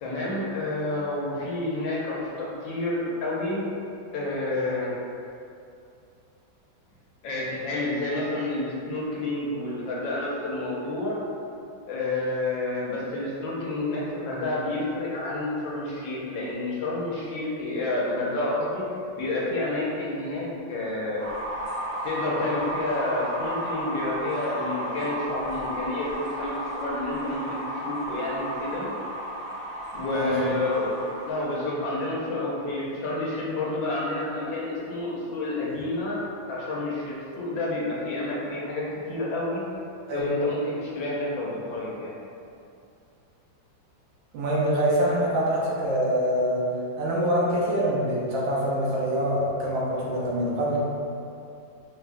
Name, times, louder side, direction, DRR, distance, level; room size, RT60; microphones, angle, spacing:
voice 1, 0.0-3.6 4.1-4.9 7.2-11.2 11.9-18.8 19.2-21.3 22.0-28.9 29.9-30.9 31.3-39.6 40.1-42.1, left 2 dB, 75° left, -5 dB, 1.4 m, -29 dB
sound 1, 21.2-31.5, equal, 45° right, 0.6 m, -33 dB
voice 2, 30.0-30.5 40.1-40.2 44.3-46.7 47.0-50.8, equal, 75° right, -5 dB, 1.4 m, -25 dB
5.0 x 2.2 x 2.5 m, 2.5 s
omnidirectional pair, 2.2 m